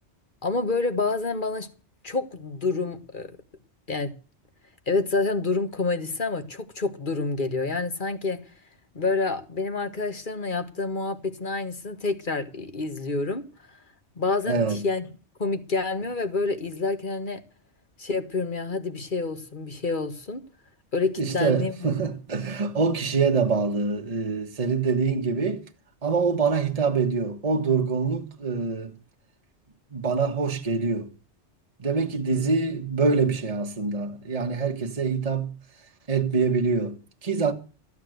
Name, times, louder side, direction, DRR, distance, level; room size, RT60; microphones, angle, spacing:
voice 1, 0.4-1.7 2.0-3.3 3.9-4.1 4.9-8.4 8.9-13.4 13.7-13.8 14.2-15.0 15.4-17.4 18.0-20.4 20.9-22.0 32.3-32.5, left 3 dB, 45° left, 1.7 m, -28 dB
voice 2, 14.4-14.8 21.2-25.6 26.0-28.9 29.9-31.1 31.8-35.5 36.1-37.5, right 4 dB, 35° right, 1.4 m, -25 dB
14.0 x 9.3 x 7.9 m
omnidirectional pair, 1.2 m